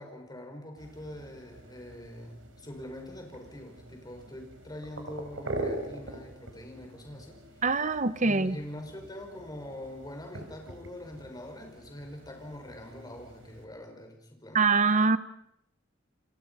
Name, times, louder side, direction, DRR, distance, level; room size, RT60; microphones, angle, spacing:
voice 1, 0.0-7.4 8.2-14.7, left 1 dB, 20° left, 3 dB, 5.5 m, -44 dB
sound 1, 0.8-13.6, right 2 dB, 90° right, 4.5 m, -43 dB
voice 2, 7.6-8.6 14.5-15.2, right 4 dB, 40° right, 14 dB, 0.9 m, -24 dB
29.0 x 26.0 x 5.6 m, 0.74 s
head